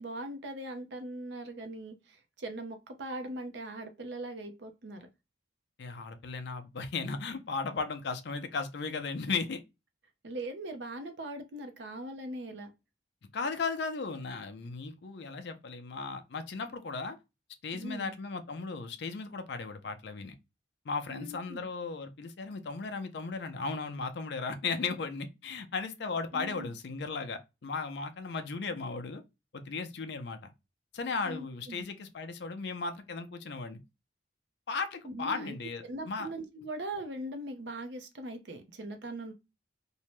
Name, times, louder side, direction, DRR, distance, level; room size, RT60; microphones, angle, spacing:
voice 1, 0.0-5.1 10.2-12.7 17.7-18.1 21.1-21.6 26.3-26.7 31.2-31.8 35.0-35.5 35.8-39.3, right 1 dB, 70° right, 0.6 m, -40 dB
voice 2, 5.8-9.6 13.3-17.2 17.6-20.4 20.9-29.2 29.5-30.5 30.9-33.8 34.7-36.3, left 4 dB, 60° left, 0.5 m, -36 dB
2.6 x 2.1 x 2.9 m
head